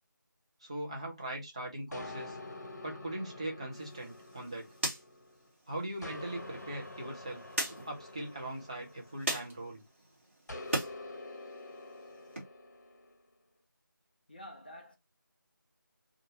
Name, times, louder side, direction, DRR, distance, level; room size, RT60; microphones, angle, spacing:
voice 1, 0.6-2.4 2.8-4.7 5.7-7.4 7.7-9.8, right 1 dB, 15° right, 0.6 m, -40 dB
sound 1, 1.9-5.5 6.0-9.7 10.5-13.2, left 2 dB, 50° left, 0.9 m, -47 dB
sound 2, 3.7-10.9 11.3-12.4, right 1 dB, 35° right, 1.2 m, -41 dB
voice 2, 14.3-15.0, left 1 dB, 25° left, 0.4 m, -48 dB
2.6 x 2.4 x 2.8 m
figure-of-eight pair, 165°, 11 cm